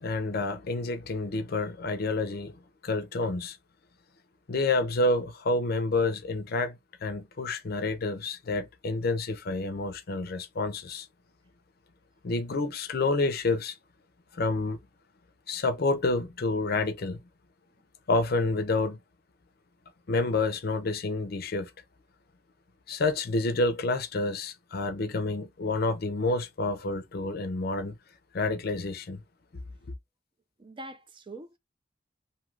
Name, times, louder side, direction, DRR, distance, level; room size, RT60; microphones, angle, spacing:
voice 1, 0.0-2.5 2.8-3.6 4.5-11.1 12.2-13.7 14.3-14.8 15.5-17.2 18.1-19.0 20.1-21.7 22.9-27.9 28.3-29.2, left 2 dB, 55° left, 0.5 m, -29 dB
voice 2, 30.6-31.6, right 2 dB, 25° right, 0.4 m, -43 dB
2.7 x 2.4 x 3.1 m
head